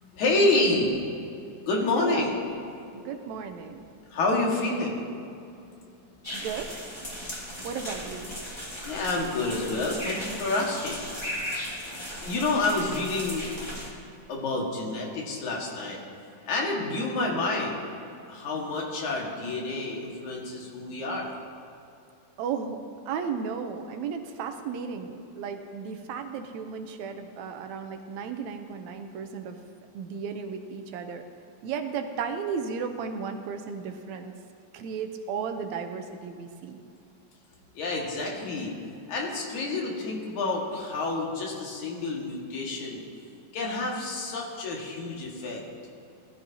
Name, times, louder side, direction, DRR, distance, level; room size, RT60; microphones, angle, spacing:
voice 1, 0.1-1.0 1.7-2.3 4.1-5.0 8.8-11.0 12.2-13.5 14.3-16.0 16.5-17.8 18.3-21.3 37.7-38.7 39.1-43.0 43.5-45.6, left 2 dB, 75° left, -2 dB, 3.1 m, -28 dB
voice 2, 2.0-2.4 2.9-3.9 6.3-6.9 7.6-8.3 22.4-22.8 23.1-29.6 29.9-31.2 31.6-34.3 34.7-36.8, right 6 dB, 75° right, 6 dB, 1.9 m, -34 dB
sound 1, 6.2-13.9, equal, 25° left, 0.5 m, -37 dB
19.0 x 12.5 x 2.8 m, 2.6 s
omnidirectional pair, 3.4 m